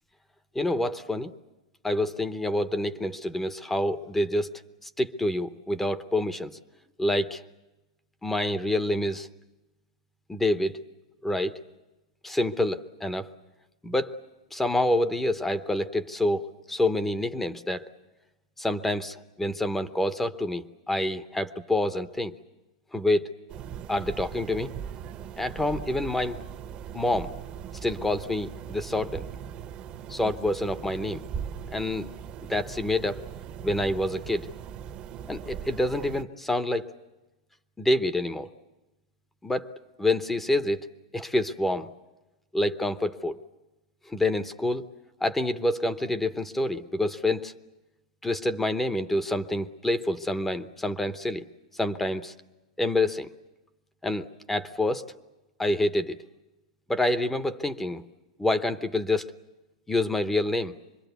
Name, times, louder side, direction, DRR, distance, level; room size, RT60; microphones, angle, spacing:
voice 1, 0.5-1.3 1.8-6.5 7.0-7.4 8.2-9.3 10.3-10.8 11.2-11.6 12.2-13.3 13.8-14.2 14.5-17.9 18.6-22.3 22.9-23.4 23.9-24.7 25.4-26.4 26.9-27.3 27.8-29.3 30.1-31.2 31.7-32.1 32.4-33.2 33.6-34.5 35.3-36.9 37.8-38.5 39.4-39.7 40.0-40.9 41.1-41.9 42.5-43.4 44.1-44.8 45.2-47.5 48.2-51.5 51.7-52.3 52.8-53.3 54.0-55.0 55.6-56.2 56.9-58.0 58.4-59.3 59.9-60.8, left 1 dB, 5° left, 12 dB, 0.7 m, -27 dB
sound 1, 23.5-36.2, right 8 dB, 30° right, 0.8 m, -40 dB
25.5 x 22.0 x 8.1 m, 1.1 s
supercardioid pair, 140°, 3 cm